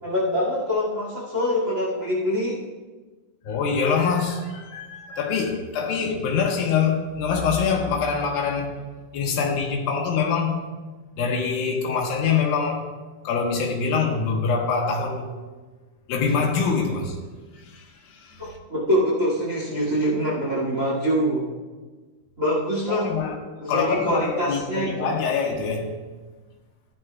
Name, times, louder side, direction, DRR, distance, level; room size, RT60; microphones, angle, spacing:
voice 1, 0.0-2.6 18.4-21.5 22.4-23.1 23.6-25.2, equal, 25° right, -5 dB, 2.0 m, -24 dB
voice 2, 3.4-8.8 9.1-10.6 11.2-12.8 13.2-15.3 16.1-17.2 17.5-18.6 22.9-23.4 23.7-25.9, left 5 dB, 90° left, 0 dB, 3.1 m, -24 dB
15.0 x 11.0 x 2.3 m, 1.3 s
omnidirectional pair, 4.0 m